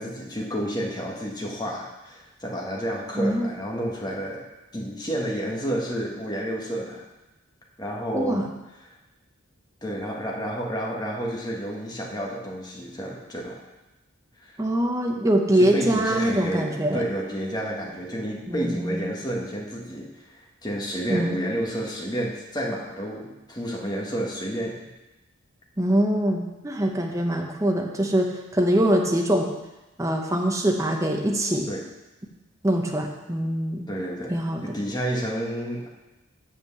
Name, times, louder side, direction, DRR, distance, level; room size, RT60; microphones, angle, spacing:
voice 1, 0.0-4.4 4.7-7.0 7.8-8.4 9.8-13.6 14.4-14.6 15.6-24.9 31.7-31.8 33.9-35.9, equal, 20° left, -2 dB, 1.5 m, -30 dB
voice 2, 3.2-3.5 8.1-8.5 14.6-17.0 18.5-19.0 21.1-21.4 25.8-29.5 30.0-31.7 32.6-33.8 34.3-34.6, right 1 dB, 15° right, 1 dB, 0.8 m, -23 dB
7.4 x 5.7 x 7.0 m, 1.0 s
head